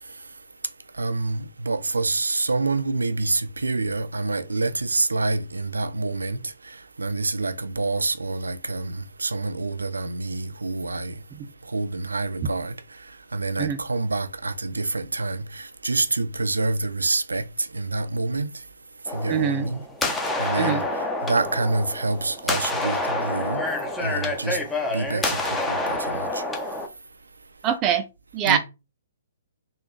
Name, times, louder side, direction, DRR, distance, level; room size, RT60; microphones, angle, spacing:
voice 1, 1.0-11.1 11.7-12.8 13.3-18.5 19.1-19.8 20.4-20.9 21.2-23.6 24.0-24.6 24.9-26.4 28.4-28.6, right 3 dB, 85° right, 0.4 m, -27 dB
sound 1, 19.1-26.9, left 2 dB, 10° left, 0.7 m, -28 dB
voice 2, 19.3-19.7 20.6-20.8 27.6-28.0 28.3-28.6, right 8 dB, 25° right, 0.4 m, -23 dB
3.8 x 2.3 x 3.1 m
figure-of-eight pair, 130°, 0 cm